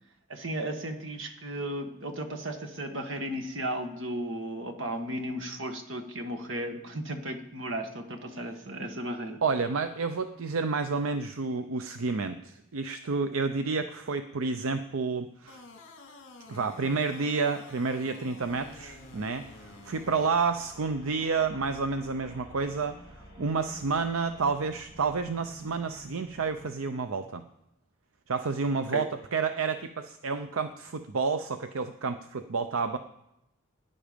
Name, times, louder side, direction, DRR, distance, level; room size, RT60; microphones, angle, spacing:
voice 1, 0.3-9.4 28.9-29.1, right 1 dB, 65° right, 5 dB, 1.5 m, -35 dB
voice 2, 9.4-15.6 16.5-23.0 23.4-27.4 28.3-33.0, right 4 dB, 80° right, 9 dB, 0.6 m, -30 dB
sound 1, 15.5-20.3, left 3 dB, 65° left, 1.9 m, -50 dB
sound 2, 18.4-26.7, right 1 dB, 20° right, 4.7 m, -51 dB
17.5 x 10.0 x 5.2 m, 0.88 s
head